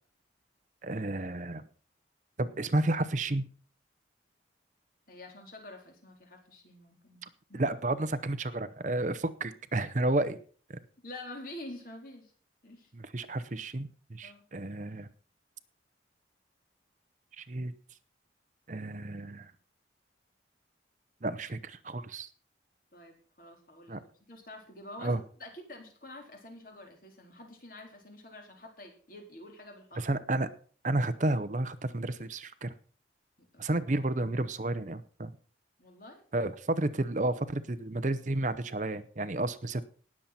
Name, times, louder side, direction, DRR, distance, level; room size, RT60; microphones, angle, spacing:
voice 1, 0.8-1.7 2.4-3.5 7.5-10.4 10.7-10.8 12.9-15.1 17.4-17.7 18.7-19.5 21.2-22.3 23.9-24.0 25.0-25.2 30.0-30.5 30.8-32.7 33.6-35.3 36.3-39.8, right 2 dB, 40° right, 13 dB, 0.7 m, -31 dB
voice 2, 5.1-7.6 11.0-12.3 12.6-12.9 14.2-14.4 22.9-30.1 33.5-33.7 35.8-36.2, left 1 dB, 50° left, 2 dB, 3.9 m, -48 dB
19.5 x 7.5 x 4.2 m, 0.42 s
head